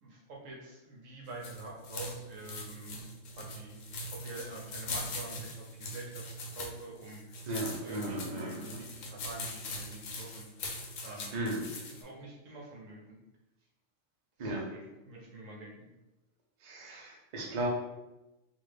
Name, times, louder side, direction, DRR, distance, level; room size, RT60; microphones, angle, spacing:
voice 1, 0.0-3.1 3.3-3.8 4.1-7.3 7.6-10.4 11.0-11.3 11.8-13.2 14.4-15.9, right 2 dB, 70° right, -2 dB, 1.1 m, -47 dB
sound 1, 1.3-12.0, left 1 dB, 75° left, 1.0 m, -42 dB
voice 2, 7.5-8.8 11.3-11.7 14.4-14.7 16.6-17.7, right 1 dB, 45° right, -2 dB, 0.6 m, -36 dB
3.2 x 2.4 x 3.2 m, 1.0 s
omnidirectional pair, 1.4 m